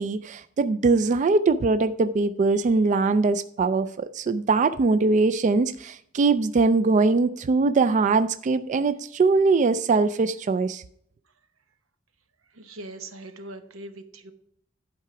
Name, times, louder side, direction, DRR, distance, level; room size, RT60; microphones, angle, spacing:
voice 1, 0.0-10.8, right 3 dB, 35° right, 0.3 m, -22 dB
voice 2, 12.5-14.3, right 2 dB, 90° right, 0.9 m, -41 dB
11.5 x 4.7 x 5.8 m
head